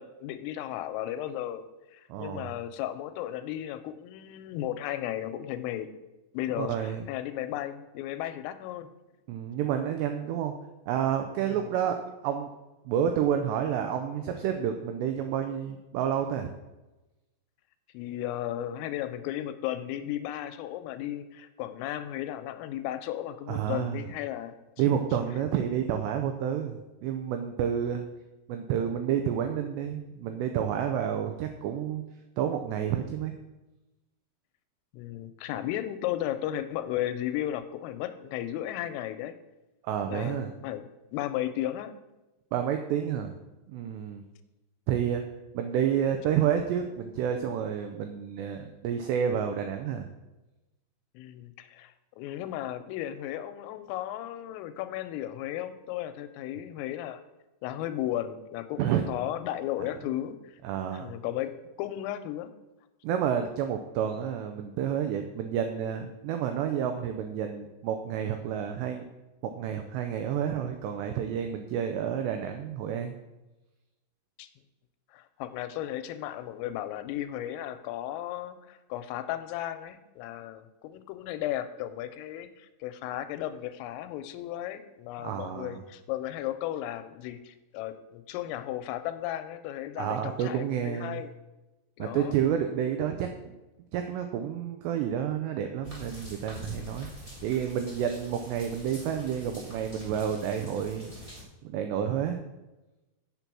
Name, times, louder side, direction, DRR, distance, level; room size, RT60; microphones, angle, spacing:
voice 1, 0.0-1.7 1.9-5.9 6.3-8.9 11.4-11.6 17.9-24.9 27.8-28.0 34.9-39.4 40.1-41.9 51.1-57.2 57.6-60.6 60.9-61.5 61.8-62.5 74.4-74.5 75.1-91.3 92.0-92.4, left 12 dB, 90° left, 11 dB, 3.3 m, -35 dB
voice 2, 2.1-2.5 6.6-7.0 9.3-10.5 10.9-12.5 12.9-16.5 23.5-24.0 24.8-28.0 28.5-32.0 32.4-33.3 39.8-40.5 42.5-43.3 43.7-44.2 44.9-45.2 45.5-50.1 58.8-59.0 60.6-61.1 63.0-69.0 69.4-73.2 85.2-85.8 90.0-91.2 92.0-93.5 93.9-97.1 97.4-101.1 101.6-102.4, right 9 dB, 85° right, 6 dB, 2.4 m, -30 dB
sound 1, 95.8-101.4, equal, 20° right, 1.0 m, -45 dB
8.1 x 6.9 x 6.0 m, 1.1 s
omnidirectional pair, 5.7 m